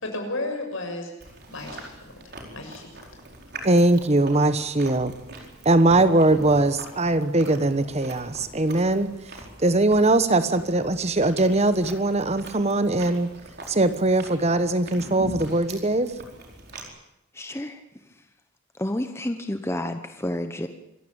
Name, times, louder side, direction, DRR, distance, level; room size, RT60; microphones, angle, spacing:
voice 1, 0.0-1.1 1.5-1.9 2.5-3.0, left 2 dB, 75° left, 3 dB, 6.7 m, -32 dB
Chewing mastication, 1.2-16.8, right 1 dB, 50° right, 4.8 m, -42 dB
voice 2, 3.6-5.1 5.6-9.1 9.6-13.3 13.7-16.1, right 2 dB, 30° right, 12 dB, 1.1 m, -21 dB
voice 3, 17.3-18.3 18.7-20.7, left 1 dB, 10° left, 7 dB, 1.0 m, -30 dB
26.0 x 15.5 x 8.9 m, 0.88 s
head